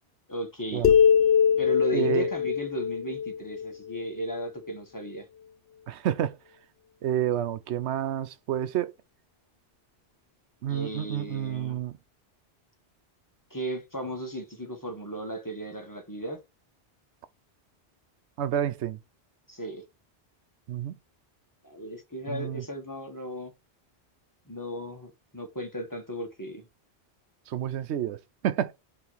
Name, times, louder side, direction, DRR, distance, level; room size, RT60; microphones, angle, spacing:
voice 1, 0.3-0.9 1.6-5.3 10.7-11.8 13.5-16.4 19.5-19.8 21.6-23.5 24.5-26.7, equal, 15° left, 1.5 m, -36 dB
sound 1, 0.8-4.4, left 7 dB, 65° left, 0.8 m, -23 dB
voice 2, 1.9-2.3 5.9-6.4 7.0-8.9 10.6-12.0 18.4-19.0 20.7-21.0 22.3-22.6 27.5-28.7, right 10 dB, 85° right, 0.9 m, -29 dB
5.8 x 3.2 x 5.7 m
omnidirectional pair, 1.1 m